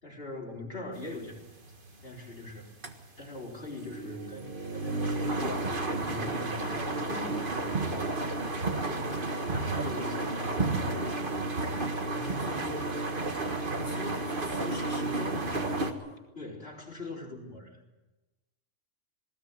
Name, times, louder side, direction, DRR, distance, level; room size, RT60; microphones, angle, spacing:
voice 1, 0.0-1.4 2.0-2.7 3.2-5.7 6.0-8.3 8.8-11.3 16.3-17.8, left 2 dB, 50° left, -1 dB, 4.3 m, -42 dB
sound 1, 1.0-15.9, right 2 dB, 45° right, 1.7 m, -32 dB
voice 2, 12.1-13.2 13.7-16.2, left 2 dB, 10° left, -2 dB, 3.7 m, -42 dB
19.5 x 18.0 x 9.5 m, 1.1 s
omnidirectional pair, 1.3 m